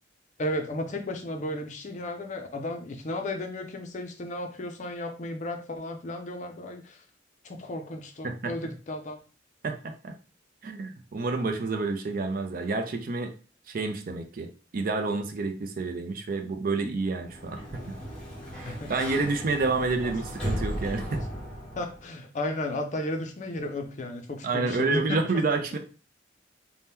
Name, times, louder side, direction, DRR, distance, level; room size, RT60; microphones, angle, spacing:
voice 1, 0.4-7.0 7.4-9.2 18.6-18.9 19.8-19.9 21.8-25.2, left 1 dB, 40° left, 4 dB, 0.5 m, -34 dB
voice 2, 9.6-10.1 10.6-13.3 13.7-17.6 17.9-18.0 18.5-21.2 24.4-25.8, right 3 dB, 50° right, 5 dB, 0.4 m, -29 dB
Sliding door, 17.2-22.1, equal, 5° left, 0.7 m, -36 dB
2.8 x 2.1 x 3.5 m, 0.35 s
head